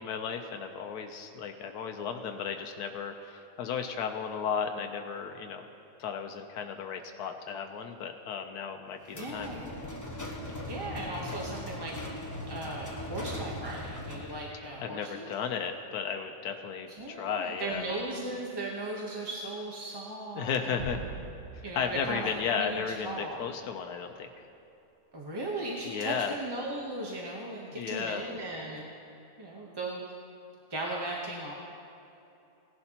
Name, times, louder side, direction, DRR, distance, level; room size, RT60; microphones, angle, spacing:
voice 1, 0.0-5.6 6.0-9.5 14.8-17.9 20.3-21.0 21.5-24.3 25.8-26.4 27.7-28.2, left 6 dB, 90° left, 5 dB, 1.2 m, -34 dB
sound 1, 9.1-14.5, left 1 dB, 15° left, 0.9 m, -39 dB
voice 2, 9.1-9.8 10.7-11.9 12.5-15.3 17.0-21.0 21.6-23.4 25.1-28.8 29.4-30.0 30.7-31.5, right 2 dB, 20° right, -3 dB, 0.8 m, -37 dB
sound 2, 20.8-23.4, right 1 dB, 50° right, 2.0 m, -42 dB
17.5 x 11.0 x 2.9 m, 2.8 s
omnidirectional pair, 1.7 m